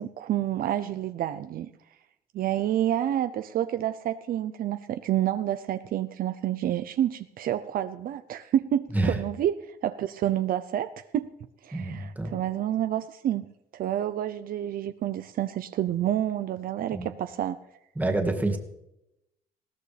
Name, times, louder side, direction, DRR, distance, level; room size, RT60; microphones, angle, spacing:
voice 1, 0.0-1.7 2.3-11.3 11.6-13.5 13.7-17.6, right 11 dB, 60° right, 11 dB, 0.6 m, -29 dB
voice 2, 11.7-12.4 16.9-17.1 18.0-18.6, right 2 dB, 10° right, 3 dB, 2.2 m, -27 dB
20.5 x 16.0 x 3.4 m, 0.88 s
cardioid pair, 110°, 17 cm